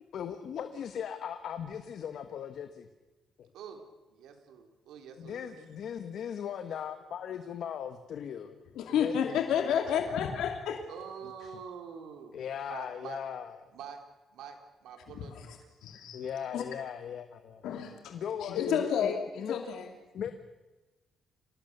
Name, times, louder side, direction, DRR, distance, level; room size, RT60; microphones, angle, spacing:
voice 1, 0.1-2.9 3.4-3.5 5.2-9.7 11.4-11.6 12.3-13.6 16.1-17.6 18.1-19.7 20.1-20.3, left 8 dB, 65° left, 8 dB, 1.5 m, -38 dB
voice 2, 3.5-5.6 10.9-12.4 12.7-13.2 13.7-14.0 14.3-15.6, right 7 dB, 85° right, 5 dB, 3.8 m, -46 dB
voice 3, 8.7-10.8 15.2-15.6 15.8-16.2 16.5-16.6 17.6-18.1 18.4-19.9, left 8 dB, 85° left, 4 dB, 2.5 m, -31 dB
26.5 x 18.5 x 6.8 m, 1.1 s
cardioid pair, 100°, 0 cm